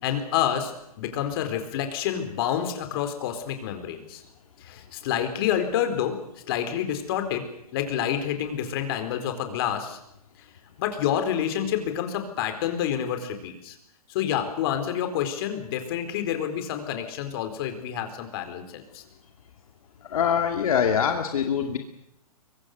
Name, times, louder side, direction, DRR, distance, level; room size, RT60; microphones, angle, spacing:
voice 1, 0.0-4.2 4.6-6.2 6.5-7.4 7.7-10.0 10.8-13.8 14.1-19.0, left 9 dB, 40° left, 7 dB, 4.4 m, -28 dB
voice 2, 20.1-21.8, left 8 dB, 65° left, 4 dB, 2.5 m, -23 dB
26.5 x 23.5 x 6.8 m, 0.79 s
hypercardioid pair, 155°, 19 cm